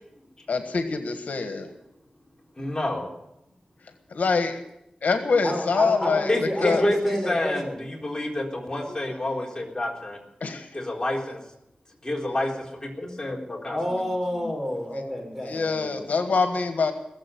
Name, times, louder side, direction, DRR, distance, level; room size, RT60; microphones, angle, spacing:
voice 1, 0.5-1.7 4.1-4.6 5.0-6.8 8.7-9.1 10.4-10.8 15.5-16.9, left 4 dB, 85° left, 7 dB, 1.5 m, -25 dB
voice 2, 2.6-3.1 6.3-10.2 10.7-11.4 12.0-14.0 14.3-14.4, left 1 dB, 25° left, 0 dB, 3.9 m, -28 dB
voice 3, 5.4-7.8 13.7-16.1, left 1 dB, 5° right, 0 dB, 6.7 m, -29 dB
19.5 x 7.8 x 9.3 m, 0.84 s
wide cardioid pair, 70°, 3 cm